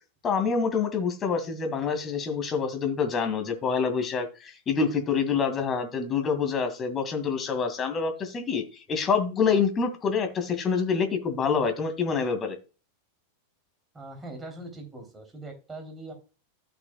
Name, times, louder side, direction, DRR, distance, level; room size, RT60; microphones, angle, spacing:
voice 1, 0.2-12.6, left 5 dB, 25° left, 6 dB, 2.1 m, -26 dB
voice 2, 13.9-16.1, right 2 dB, 15° right, 4 dB, 3.3 m, -41 dB
14.0 x 6.1 x 2.3 m, 0.33 s
figure-of-eight pair, 90°, 0 cm